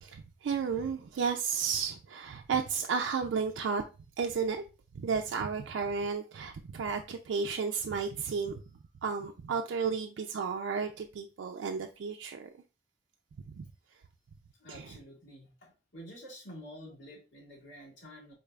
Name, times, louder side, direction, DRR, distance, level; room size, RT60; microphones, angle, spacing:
voice 1, 0.0-3.8 4.2-4.6 4.9-8.6 9.0-12.5 13.5-13.7 14.7-15.0, right 5 dB, 85° right, 0.3 m, -33 dB
voice 2, 14.6-18.3, equal, 90° left, 2.0 m, -49 dB
4.4 x 3.3 x 2.3 m
head